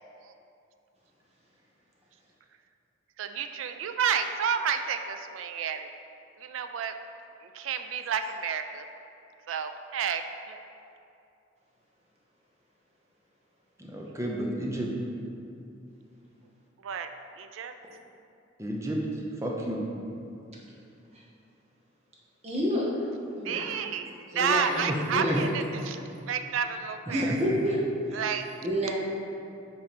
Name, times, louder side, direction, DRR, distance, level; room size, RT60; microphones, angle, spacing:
voice 1, 3.2-5.9 6.4-6.9 7.4-8.9 9.5-10.2 10.5-10.6 16.8-17.1 17.4-17.7 23.4-27.4 28.1-28.5, right 7 dB, 85° right, 8 dB, 0.4 m, -31 dB
voice 2, 13.8-14.9 18.6-19.0 19.4-19.8 24.9-25.0 25.3-25.4, right 1 dB, 15° right, -1 dB, 0.7 m, -31 dB
voice 3, 22.4-22.9 23.4-23.7 24.3-24.8 25.1-25.5 27.1-27.8 28.1-28.2 28.6-28.9, equal, 35° right, -3 dB, 1.0 m, -28 dB
7.7 x 3.1 x 5.1 m, 2.6 s
head